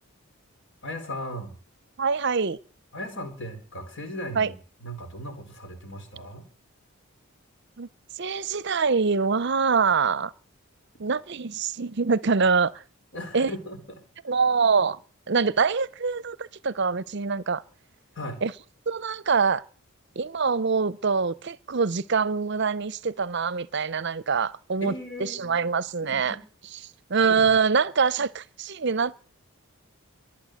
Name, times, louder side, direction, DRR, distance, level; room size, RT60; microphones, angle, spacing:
voice 1, 0.8-1.5 2.9-4.5 4.8-6.4 13.1-13.8 18.1-18.4 24.8-25.7 26.3-26.4 27.2-27.5, left 1 dB, 55° left, 4.3 m, -37 dB
voice 2, 2.0-2.6 4.3-4.5 7.8-7.9 8.2-10.3 11.0-12.8 13.3-13.5 14.2-15.0 15.3-17.6 18.4-18.5 18.9-19.6 20.2-24.9 25.2-26.4 27.1-29.1, right 5 dB, 50° right, 0.6 m, -24 dB
23.0 x 8.8 x 6.5 m
head